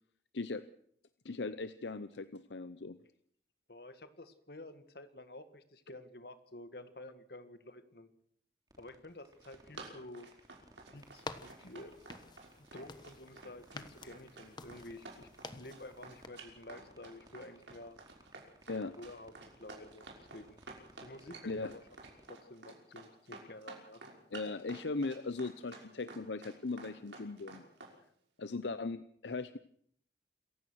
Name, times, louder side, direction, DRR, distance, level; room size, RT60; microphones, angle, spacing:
voice 1, 1.2-3.0 18.7-18.9 21.5-21.7 24.3-27.6 28.4-29.6, left 3 dB, 80° left, 13 dB, 0.7 m, -38 dB
voice 2, 3.7-8.1 8.8-10.3 10.9-12.0 12.6-18.0 18.7-20.6 21.0-21.8 22.3-24.0, left 1 dB, 60° left, 10 dB, 1.9 m, -51 dB
sound 1, 8.7-22.3, right 1 dB, 20° right, 3.4 m, -60 dB
Run, 9.2-27.9, right 3 dB, 90° right, 5.8 m, -51 dB
sound 2, 11.0-16.3, left 3 dB, 25° left, 1.2 m, -50 dB
27.5 x 15.5 x 6.4 m, 0.65 s
head